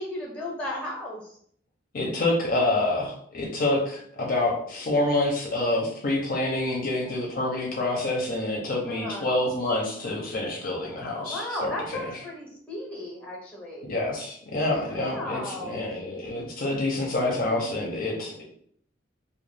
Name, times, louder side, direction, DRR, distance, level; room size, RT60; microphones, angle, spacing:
voice 1, 0.0-1.3 8.9-9.3 11.2-13.9 14.9-15.9, left 1 dB, 5° left, -2 dB, 0.7 m, -35 dB
voice 2, 1.9-12.1 13.8-18.4, left 2 dB, 45° left, -1 dB, 0.5 m, -27 dB
2.2 x 2.2 x 3.2 m, 0.63 s
head